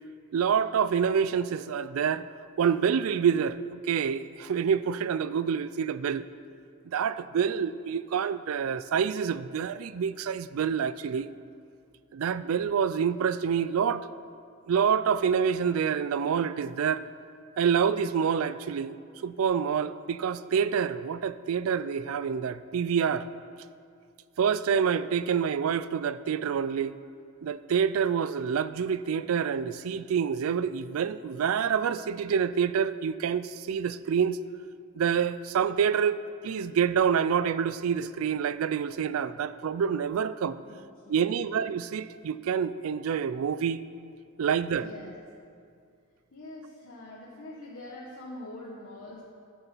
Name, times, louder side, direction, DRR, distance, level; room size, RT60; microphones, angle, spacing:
voice 1, 0.3-2.3 2.6-6.3 6.8-11.3 12.1-14.1 14.7-17.0 17.6-19.0 19.2-23.3 24.4-27.0 27.4-34.4 34.9-40.6 41.1-43.8 44.4-44.9, right 7 dB, 85° right, 15 dB, 0.4 m, -27 dB
voice 2, 40.6-41.5 44.7-45.1 46.3-49.2, left 1 dB, 70° left, -6 dB, 1.5 m, -44 dB
13.5 x 6.8 x 5.6 m, 2.3 s
head